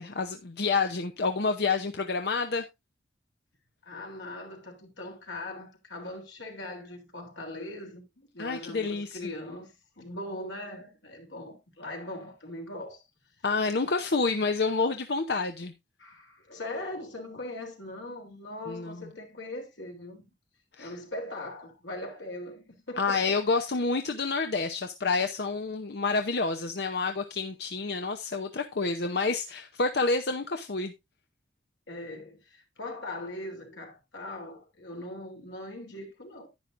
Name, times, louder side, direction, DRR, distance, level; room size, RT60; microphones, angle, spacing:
voice 1, 0.0-2.6 8.4-9.2 13.4-15.7 18.7-19.1 20.7-20.9 23.0-30.9, left 4 dB, 60° left, 0.7 m, -28 dB
voice 2, 3.8-13.0 16.0-20.2 20.8-23.3 31.9-36.5, left 1 dB, 90° left, 3.2 m, -40 dB
10.5 x 10.0 x 2.6 m
head